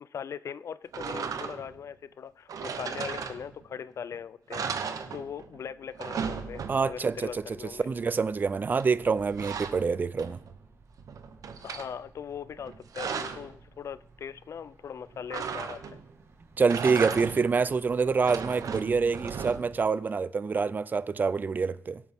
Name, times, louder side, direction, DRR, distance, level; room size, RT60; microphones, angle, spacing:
voice 1, 0.0-4.7 5.1-7.9 11.6-16.0, left 7 dB, 55° left, 0.4 m, -40 dB
sound 1, 0.9-1.8 2.5-3.8 4.1-4.2 4.5-5.6 5.8-7.1 8.8-10.6 11.0-11.9 12.6-13.5 15.3-16.1 16.6-17.6 18.1-19.9, right 6 dB, 80° right, 0.9 m, -36 dB
sound 2, 6.3-19.1, right 3 dB, 50° right, 1.5 m, -57 dB
voice 2, 6.7-10.4 16.6-22.0, right 5 dB, 30° right, 0.4 m, -26 dB
22.5 x 8.4 x 3.5 m
wide cardioid pair, 165°, 6 cm